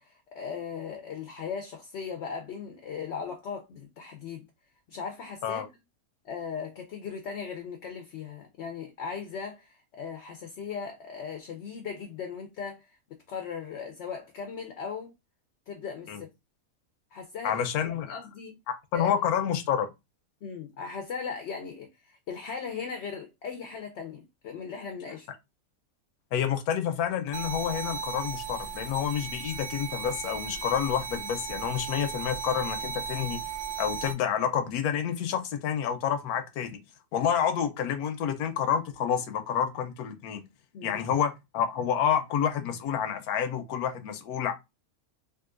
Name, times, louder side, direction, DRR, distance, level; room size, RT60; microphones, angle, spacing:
voice 1, 0.0-4.5 4.9-5.7 6.2-13.0 13.3-15.1 15.7-16.3 17.1-18.6 18.9-19.1 20.4-25.3 40.7-41.1, left 6 dB, 65° left, 0.7 m, -38 dB
voice 2, 17.4-18.2 18.7-19.9 26.3-33.4 33.8-36.8 37.1-40.4 40.8-44.5, left 8 dB, 90° left, 1.1 m, -29 dB
sound 1, 27.3-34.1, right 6 dB, 60° right, 0.9 m, -36 dB
3.7 x 2.4 x 2.4 m
omnidirectional pair, 1.5 m